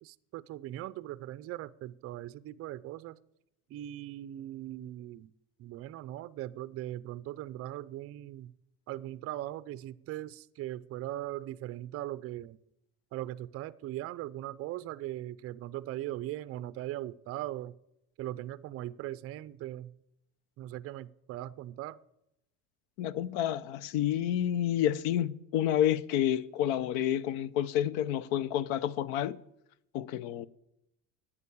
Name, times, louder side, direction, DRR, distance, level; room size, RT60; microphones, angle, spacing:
voice 1, 0.0-3.2 3.7-5.3 5.6-8.5 8.9-12.6 13.1-17.7 18.2-19.9 20.6-22.0, right 14 dB, 35° right, 0.4 m, -39 dB
voice 2, 23.0-29.4 29.9-30.5, left 11 dB, 80° left, 0.8 m, -29 dB
11.5 x 8.6 x 8.5 m
cardioid pair, 150°, 40 cm